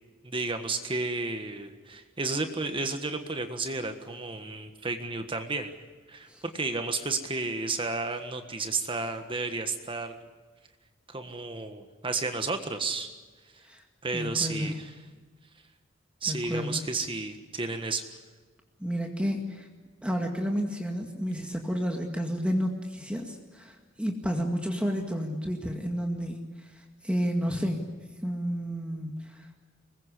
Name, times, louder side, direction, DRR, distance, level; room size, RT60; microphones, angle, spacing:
voice 1, 0.2-5.7 6.1-6.3 6.5-10.2 11.1-13.1 14.0-14.9 16.2-18.0, right 3 dB, 25° right, 7 dB, 1.5 m, -32 dB
voice 2, 14.1-14.8 16.3-16.8 18.8-19.7 20.0-27.8 28.2-29.5, equal, 5° right, 2 dB, 2.1 m, -31 dB
24.5 x 21.0 x 8.3 m, 1.4 s
head